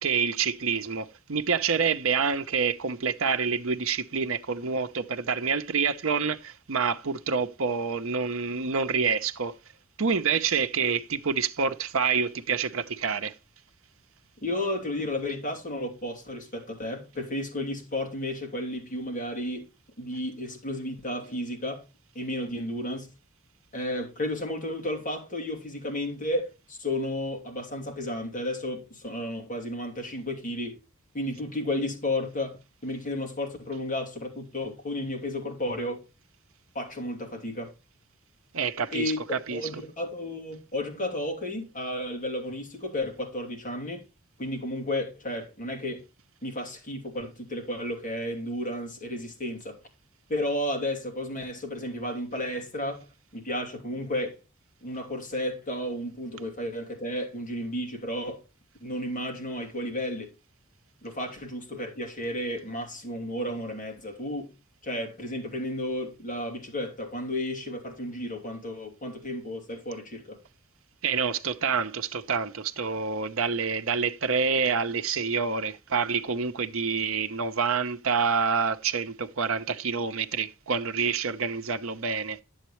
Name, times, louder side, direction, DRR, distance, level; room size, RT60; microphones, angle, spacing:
voice 1, 0.0-9.5 10.0-13.3 38.5-39.6 71.0-82.4, right 5 dB, 70° right, 0.8 m, -27 dB
voice 2, 14.4-19.7 20.0-21.8 22.1-23.1 23.7-30.8 31.1-36.0 36.7-37.7 38.9-44.0 44.4-46.0 46.4-49.8 50.3-53.1 53.3-54.4 54.8-58.4 58.8-60.3 61.0-64.5 64.8-70.4, left 1 dB, 40° left, 2.7 m, -33 dB
10.5 x 8.0 x 3.1 m
head